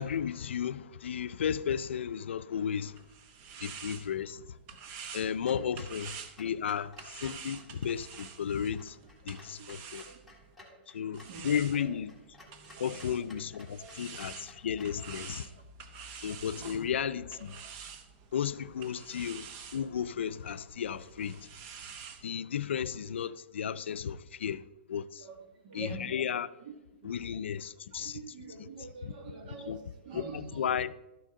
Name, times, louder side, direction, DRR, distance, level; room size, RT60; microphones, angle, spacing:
voice 1, 0.0-3.0 3.6-4.4 5.1-9.0 9.3-10.0 10.9-12.1 12.8-15.5 16.2-17.6 18.3-19.5 19.7-21.5 22.2-24.6 24.9-25.3 25.7-26.5 27.0-28.2 29.0-29.1 29.7-29.8 30.1-30.9, left 8 dB, 85° left, 0.4 m, -34 dB
sound 1, 2.7-10.6 11.1-22.2, right 6 dB, 30° right, 0.9 m, -48 dB
voice 2, 5.3-5.8 9.0-9.1 9.6-9.8 10.1-10.2 10.6-12.0 12.6-13.2 13.5-14.0 14.9-15.2 15.5-15.6 16.6-16.9 17.3-17.4 25.2-26.2 26.6-26.7 27.0-27.5 27.9-30.7, right 3 dB, 50° right, 1.9 m, -47 dB
Clock, 5.4-15.0, left 2 dB, ahead, 1.6 m, -56 dB
12.5 x 6.3 x 3.8 m
hypercardioid pair, 160°, 6 cm